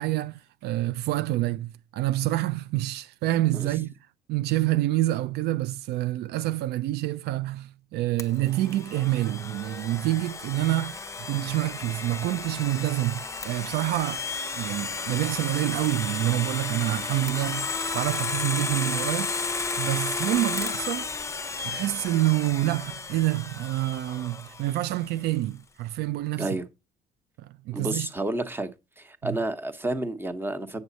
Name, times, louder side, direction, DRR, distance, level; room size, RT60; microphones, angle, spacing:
voice 1, 0.0-3.9 4.3-14.3 14.6-19.3 19.8-21.1 21.6-26.6 27.4-28.1 29.2-29.4, right 16 dB, 75° right, 0.4 m, -27 dB
Domestic sounds home sounds, 8.2-25.0, left 4 dB, 15° left, 0.7 m, -33 dB
voice 2, 27.7-28.7 29.0-30.8, right 2 dB, 15° right, 1.1 m, -30 dB
8.3 x 6.3 x 4.0 m
cardioid pair, 110°, 17 cm